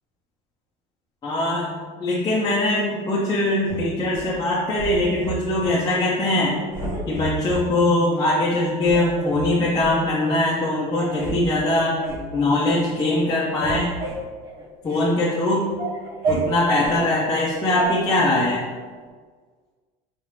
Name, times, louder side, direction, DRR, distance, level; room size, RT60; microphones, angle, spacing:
voice 1, 1.2-6.6 7.1-12.0 12.3-13.9 14.8-15.7 16.3-18.6, left 1 dB, 20° left, -6 dB, 0.6 m, -22 dB
sound 1, 3.6-4.3 4.8-5.7 6.1-6.4 6.7-7.6 8.2-8.3 8.8-9.9 10.5-10.6 10.9-11.4 11.7-12.3 12.7-13.0 13.3-15.1 15.5-17.0 17.8-17.9, right 3 dB, 85° right, 1.4 m, -31 dB
4.2 x 3.5 x 3.2 m, 1.5 s
cardioid pair, 145°, 18 cm